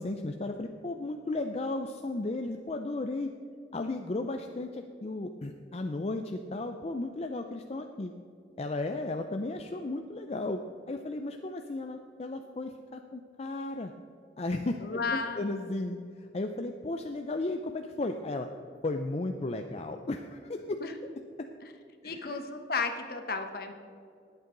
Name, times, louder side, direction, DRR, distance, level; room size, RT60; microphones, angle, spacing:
voice 1, 0.0-3.3 3.7-8.1 8.6-10.6 10.9-13.9 14.4-16.0 16.3-18.5 18.8-20.6 21.4-21.5 22.0-22.4, left 2 dB, 35° left, 5 dB, 0.4 m, -34 dB
voice 2, 14.8-15.4 20.8-20.9 21.6-21.7 22.0-23.7, left 4 dB, 55° left, 6 dB, 1.1 m, -33 dB
20.0 x 8.1 x 3.9 m, 2.5 s
head